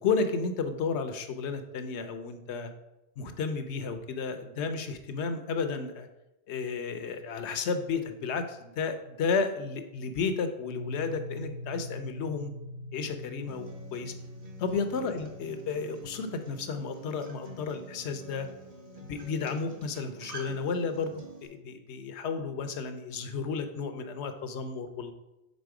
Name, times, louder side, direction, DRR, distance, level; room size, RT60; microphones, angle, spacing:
voice 1, 0.0-2.7 3.2-6.1 6.5-12.5 12.9-14.1 14.6-18.5 19.0-21.2 21.5-25.1, left 5 dB, 70° left, 8 dB, 0.9 m, -32 dB
sound 1, 10.6-20.2, left 1 dB, 60° right, 2.1 m, -45 dB
Acoustic guitar, 13.5-21.5, right 2 dB, 35° right, 0.9 m, -48 dB
5.2 x 4.1 x 4.7 m, 0.93 s
omnidirectional pair, 1.2 m